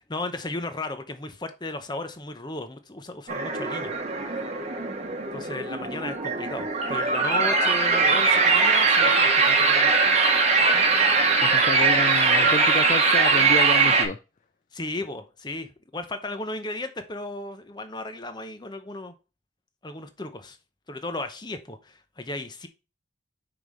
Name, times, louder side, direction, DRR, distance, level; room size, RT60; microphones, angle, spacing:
voice 1, 0.0-3.9 5.3-9.9 14.7-19.1 19.8-20.6 20.9-22.7, left 2 dB, 20° left, 0.8 m, -35 dB
sound 1, 3.3-14.1, right 4 dB, 35° right, 1.1 m, -21 dB
voice 2, 11.4-14.2, left 4 dB, 40° left, 0.4 m, -29 dB
5.9 x 5.2 x 3.2 m
head